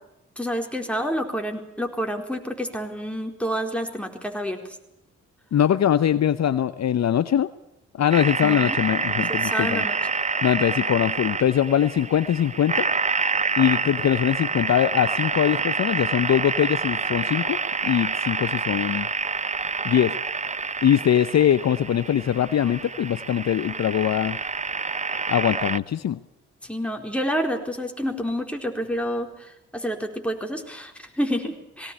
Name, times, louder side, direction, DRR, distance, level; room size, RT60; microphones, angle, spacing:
voice 1, 0.4-4.6 8.4-8.8 9.2-10.0 26.6-31.9, equal, 5° left, 3 dB, 4.3 m, -29 dB
voice 2, 5.5-7.5 8.0-9.8 10.4-12.9 13.6-19.1 19.8-20.1 20.8-24.4 25.3-26.2, left 10 dB, 50° left, 14 dB, 0.8 m, -22 dB
sound 1, 8.1-25.8, right 4 dB, 20° right, 0.7 m, -27 dB
19.0 x 18.0 x 8.6 m, 0.87 s
hypercardioid pair, 45°, 34 cm